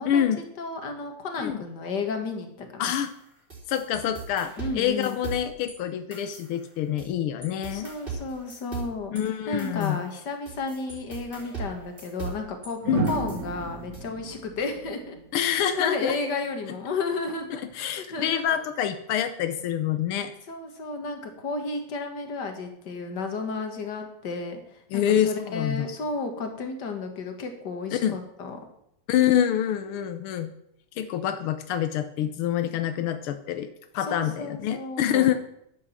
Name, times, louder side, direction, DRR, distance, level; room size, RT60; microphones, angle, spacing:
voice 1, 0.1-0.4 1.4-1.6 2.8-3.1 3.7-7.9 9.1-10.0 12.9-13.1 15.3-16.1 17.5-20.3 24.9-25.9 28.0-28.2 29.1-30.5 31.0-33.7 33.9-35.3, left 10 dB, 80° left, 9 dB, 1.2 m, -26 dB
voice 2, 0.6-2.9 4.6-5.2 7.7-9.1 9.5-12.8 13.0-18.6 20.5-28.6 34.0-35.3, left 3 dB, 40° left, 5 dB, 1.9 m, -33 dB
sound 1, 2.9-5.8 6.1-7.1 7.4-12.7 13.1-14.0, right 4 dB, 15° right, 3.3 m, -39 dB
sound 2, 11.3-11.4 12.8-15.9 17.4-17.7, right 5 dB, 60° right, 0.9 m, -33 dB
11.0 x 8.0 x 7.3 m, 0.76 s
omnidirectional pair, 3.4 m